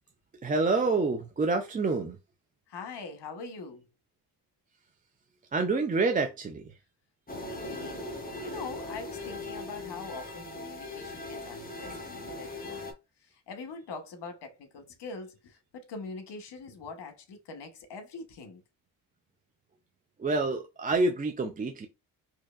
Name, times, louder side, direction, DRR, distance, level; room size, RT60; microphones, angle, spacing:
voice 1, 0.4-2.2 5.5-6.8 20.2-21.9, right 3 dB, 20° right, 0.4 m, -27 dB
voice 2, 2.7-3.8 7.3-8.1 8.4-12.9 13.2-18.6, left 4 dB, 55° left, 1.1 m, -43 dB
sound 1, 7.3-12.9, left 2 dB, 20° left, 1.0 m, -39 dB
4.3 x 2.8 x 2.4 m
cardioid pair, 75°, 49 cm